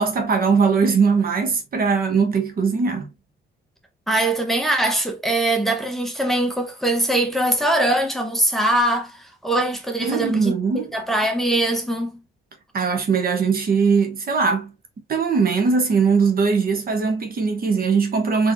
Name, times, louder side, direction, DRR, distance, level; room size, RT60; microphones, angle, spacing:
voice 1, 0.0-3.1 10.0-10.9 12.7-14.7 15.1-18.5, right 5 dB, 50° right, 1.1 m, -20 dB
voice 2, 4.1-12.2, right 1 dB, ahead, 1.1 m, -22 dB
3.8 x 3.3 x 2.7 m
cardioid pair, 90°, 20 cm